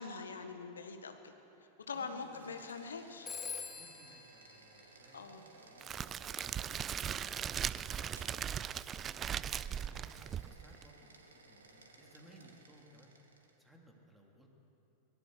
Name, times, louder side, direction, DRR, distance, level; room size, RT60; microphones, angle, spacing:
voice 1, 0.0-1.3 1.9-3.3 5.1-5.4, left 4 dB, 70° left, 7 dB, 1.6 m, -43 dB
sound 1, 1.8-13.6, right 3 dB, 70° right, 2.2 m, -59 dB
voice 2, 1.9-2.5 3.7-5.9 9.0-13.1 13.6-14.5, equal, 5° right, 0 dB, 3.4 m, -61 dB
Telephone, 3.3-5.8, left 5 dB, 15° left, 1.7 m, -46 dB
Crackle, 5.8-10.9, right 9 dB, 25° right, 0.4 m, -39 dB
22.5 x 20.0 x 6.7 m, 2.9 s
figure-of-eight pair, 90°, 0 cm